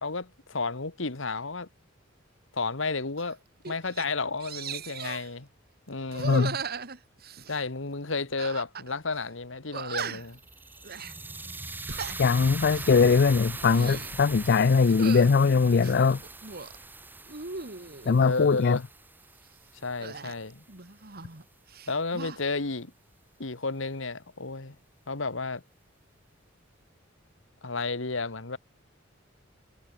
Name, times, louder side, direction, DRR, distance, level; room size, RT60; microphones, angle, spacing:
voice 1, 0.0-1.7 2.5-3.4 3.7-5.5 5.9-6.5 7.5-10.4 18.1-18.9 19.8-20.6 21.9-22.9 23.4-24.8 25.1-25.6 27.6-28.6, left 3 dB, 75° left, 1.9 m, -32 dB
sound 1, 3.2-3.3 3.6-4.1 4.4-5.3 6.1-7.6 8.4-8.9 9.2-9.3 9.7-10.4 10.8-11.1 11.7-12.2 12.6-12.9 13.5-14.1 14.9-15.3 15.8-16.8 17.3-18.2 20.0-21.4 21.7-22.4, right 5 dB, 55° right, 2.3 m, -37 dB
voice 2, 6.2-6.6 12.2-16.2 18.1-18.8, left 5 dB, 55° left, 0.5 m, -21 dB
sound 2, 10.2-20.4, right 3 dB, 10° right, 0.8 m, -41 dB
head